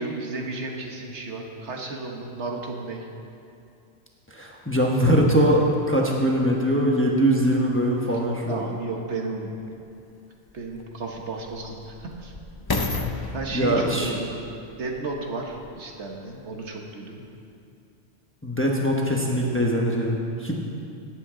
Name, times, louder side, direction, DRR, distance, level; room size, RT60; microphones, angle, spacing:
voice 1, 0.0-3.1 8.1-8.2 8.5-9.5 10.5-12.3 13.3-14.4 14.8-17.2, right 3 dB, 70° right, 1 dB, 1.4 m, -33 dB
voice 2, 4.3-8.6 13.1-14.1 18.4-20.5, equal, 10° left, -1 dB, 1.0 m, -22 dB
sound 1, 9.7-9.8 10.5-15.8 16.4-16.5, left 3 dB, 35° left, 0.3 m, -33 dB
17.5 x 8.0 x 3.8 m, 2.5 s
omnidirectional pair, 1.2 m